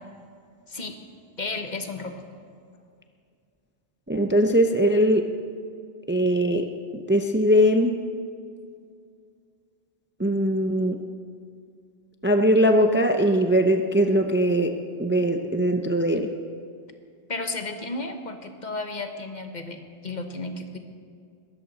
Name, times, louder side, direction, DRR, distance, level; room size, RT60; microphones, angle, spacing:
voice 1, 1.4-2.2 17.3-20.8, left 3 dB, 45° left, 6 dB, 1.2 m, -33 dB
voice 2, 4.1-5.3 6.1-6.7 7.1-8.0 10.2-11.0 12.2-16.3, equal, 15° right, 5 dB, 0.6 m, -21 dB
21.5 x 13.0 x 4.1 m, 2.2 s
omnidirectional pair, 1.1 m